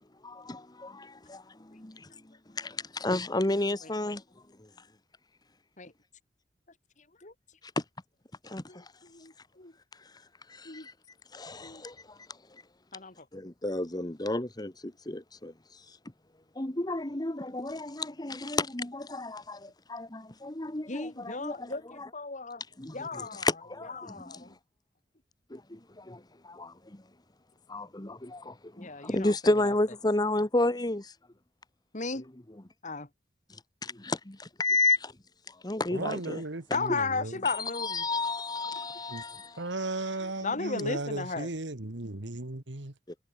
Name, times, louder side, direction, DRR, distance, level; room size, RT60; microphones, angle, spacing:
voice 1, 0.1-4.9 7.6-7.8 8.4-8.9 9.9-10.9 11.3-12.6 13.3-16.0 16.5-22.1 22.8-24.6 25.5-27.1 27.7-31.1 32.1-32.6 33.5-35.2 35.5-36.4 37.4-39.7 40.2-40.3 43.1-43.2, left 2 dB, 20° left, 1.4 m, -32 dB
voice 2, 9.1-9.7 10.6-10.9 11.6-11.8 12.9-13.3 20.9-22.6 22.9-23.5 24.0-24.6 28.8-29.3 31.9-32.3 32.8-33.1 36.7-38.0 40.4-41.5, left 4 dB, 45° left, 2.4 m, -35 dB
voice 3, 35.9-37.4 39.1-39.2 39.6-42.9, right 2 dB, 80° right, 2.0 m, -35 dB
head